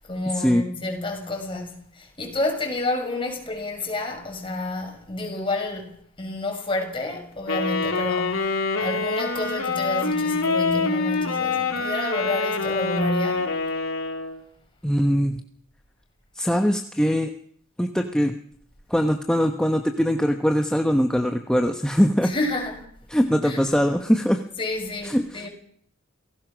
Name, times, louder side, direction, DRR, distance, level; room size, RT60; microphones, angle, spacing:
voice 1, 0.1-5.9 6.2-13.5 22.2-22.8 23.4-23.6 24.6-25.5, left 2 dB, 25° left, 6.5 m, -29 dB
Wind instrument woodwind instrument, 7.5-14.4, left 4 dB, 90° left, 3.4 m, -25 dB
voice 2, 14.8-15.4 16.3-17.3 17.8-18.4 18.9-22.3 23.1-24.4 25.0-25.5, equal, 5° left, 1.1 m, -22 dB
28.0 x 17.5 x 6.3 m
head